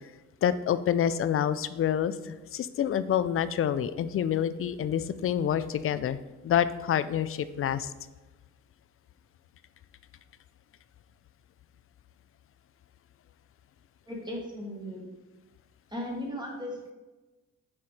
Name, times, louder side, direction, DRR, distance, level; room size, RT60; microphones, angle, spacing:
voice 1, 0.4-6.2 6.4-7.9, left 9 dB, 45° left, 14 dB, 0.4 m, -27 dB
voice 2, 14.1-15.0 15.9-16.9, left 1 dB, 15° right, -1 dB, 1.9 m, -36 dB
6.0 x 4.2 x 4.8 m, 1.1 s
cardioid pair, 90°, 30 cm